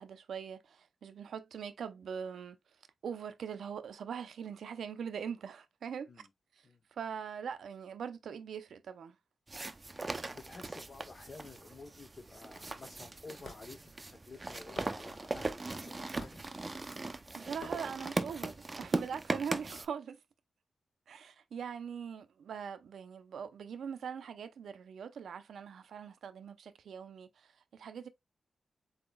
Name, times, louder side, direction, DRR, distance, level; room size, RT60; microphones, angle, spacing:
voice 1, 0.0-2.6 3.0-6.1 6.9-9.2 17.4-20.2 21.1-28.1, right 7 dB, 85° right, 0.6 m, -42 dB
sound 1, 9.5-19.9, right 2 dB, 25° right, 0.5 m, -39 dB
voice 2, 10.3-16.4, left 3 dB, 45° left, 0.9 m, -52 dB
Hammer / Wood, 13.4-13.6 14.8-14.9 16.2-16.5 17.6-17.8, left 4 dB, 65° left, 1.2 m, -48 dB
7.8 x 2.9 x 2.2 m
cardioid pair, 95°, 0 cm